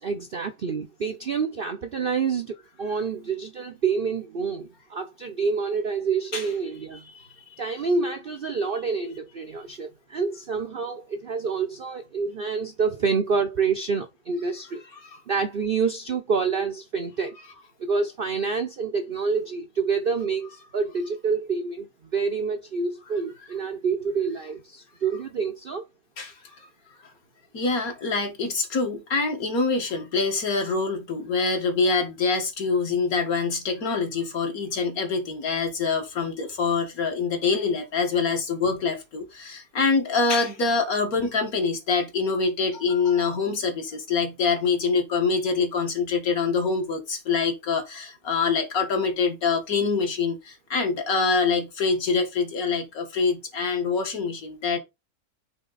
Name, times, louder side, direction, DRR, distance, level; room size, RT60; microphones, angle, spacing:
voice 1, 0.0-7.0 7.6-14.8 15.3-17.4 17.8-21.9 22.1-25.8, right 5 dB, 55° right, 0.6 m, -27 dB
voice 2, 7.0-7.6 14.9-15.2 26.2-26.7 27.5-54.8, left 4 dB, 60° left, 2.0 m, -25 dB
8.4 x 3.6 x 4.0 m
omnidirectional pair, 1.7 m